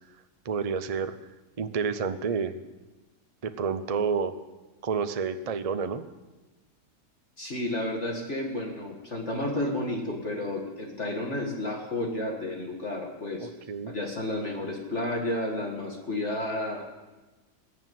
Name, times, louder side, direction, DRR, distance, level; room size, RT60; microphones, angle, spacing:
voice 1, 0.4-1.2 1.6-2.6 3.4-4.3 4.8-6.0 13.4-13.9, right 5 dB, 40° right, 9 dB, 0.5 m, -29 dB
voice 2, 7.4-13.5 13.9-16.8, left 1 dB, 45° left, 0 dB, 2.2 m, -31 dB
20.5 x 7.4 x 9.3 m, 1.2 s
omnidirectional pair, 1.8 m